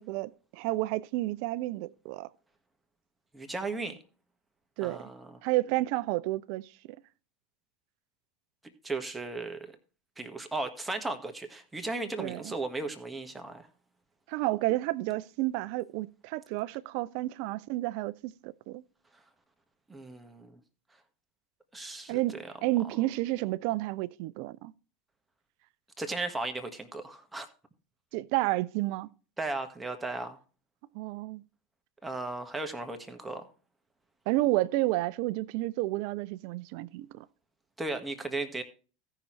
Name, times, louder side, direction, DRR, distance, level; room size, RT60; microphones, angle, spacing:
voice 1, 0.0-2.3 4.8-5.0 5.4-6.7 12.2-12.5 14.3-18.8 22.1-24.7 28.1-29.1 30.9-31.4 34.3-37.3, right 18 dB, 55° right, 0.4 m, -31 dB
voice 2, 3.3-4.0 4.8-5.4 8.8-9.7 10.2-13.7 19.9-20.6 21.7-22.4 26.0-27.5 29.4-30.4 32.0-33.5 37.8-38.6, right 2 dB, 10° right, 1.5 m, -36 dB
16.5 x 5.8 x 3.1 m
figure-of-eight pair, 80°, 0 cm